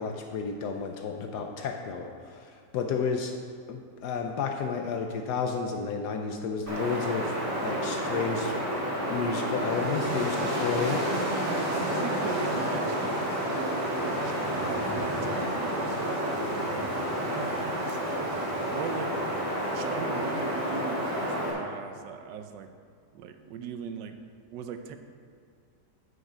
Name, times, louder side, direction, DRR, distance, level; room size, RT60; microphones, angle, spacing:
voice 1, 0.0-3.3 3.7-8.5 9.1-11.1, left 5 dB, 75° left, 4 dB, 1.2 m, -32 dB
Wind, 6.7-21.5, equal, 10° right, 2.2 m, -30 dB
voice 2, 11.4-18.2 18.6-19.1 19.7-22.7 23.1-24.2 24.5-25.0, right 6 dB, 85° right, 7 dB, 1.3 m, -40 dB
9.7 x 6.5 x 5.0 m, 2.2 s
omnidirectional pair, 1.8 m